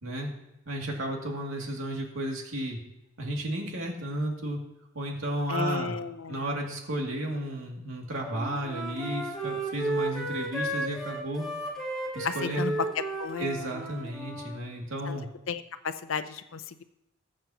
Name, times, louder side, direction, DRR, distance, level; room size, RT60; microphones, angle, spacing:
voice 1, 0.7-2.8 3.2-4.6 4.9-6.0 6.3-11.4 12.1-12.8 13.4-15.3, right 1 dB, 85° right, 0 dB, 2.5 m, -33 dB
voice 2, 5.5-6.4 12.2-12.7 13.2-13.7 15.1-15.2 15.5-16.8, left 5 dB, 75° left, 11 dB, 0.6 m, -34 dB
Wind instrument woodwind instrument, 8.2-14.6, right 1 dB, ahead, 2.4 m, -34 dB
21.0 x 7.5 x 2.9 m, 0.87 s
head